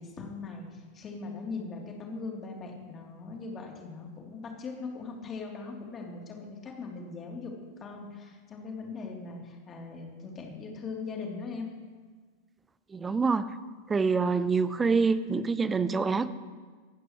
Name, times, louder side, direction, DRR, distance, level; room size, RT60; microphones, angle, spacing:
voice 1, 0.0-11.7, left 4 dB, 25° left, 0 dB, 3.4 m, -40 dB
voice 2, 12.9-13.5 13.9-16.3, right 4 dB, 15° right, 15 dB, 0.8 m, -26 dB
26.0 x 15.0 x 3.2 m, 1.5 s
figure-of-eight pair, 90°, 0 cm